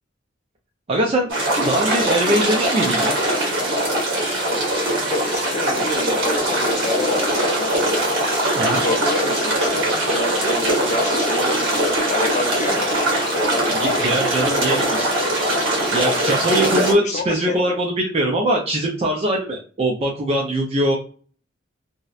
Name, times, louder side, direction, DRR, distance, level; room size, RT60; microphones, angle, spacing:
voice 1, 0.9-1.3 1.6-3.1 8.5-8.8 13.8-15.1 15.9-21.0, right 1 dB, 30° right, -1 dB, 0.4 m, -21 dB
sound 1, 1.3-16.9, right 1 dB, 75° right, 1.0 m, -21 dB
voice 2, 5.1-8.1 8.7-14.5 16.5-17.8, left 3 dB, 40° left, 6 dB, 0.4 m, -29 dB
2.7 x 2.0 x 2.3 m, 0.41 s
head